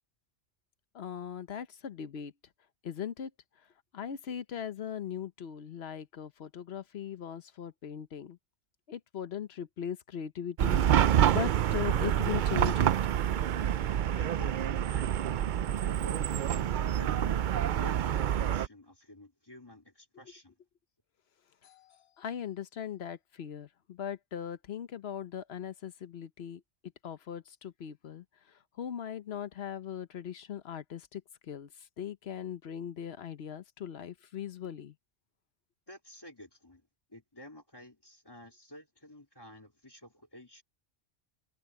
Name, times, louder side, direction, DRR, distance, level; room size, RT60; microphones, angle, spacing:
voice 1, 0.9-2.3 2.8-3.3 3.9-8.4 8.9-12.9 21.6-26.6 27.0-34.9, left 9 dB, 65° left, 1.1 m, -39 dB
Chatter / Car passing by / Traffic noise roadway noise, 10.6-18.7, right 10 dB, 60° right, 0.5 m, -27 dB
voice 2, 14.1-15.1 15.8-20.5 35.9-36.8 37.1-40.6, equal, 20° left, 3.4 m, -50 dB
omnidirectional pair, 1.2 m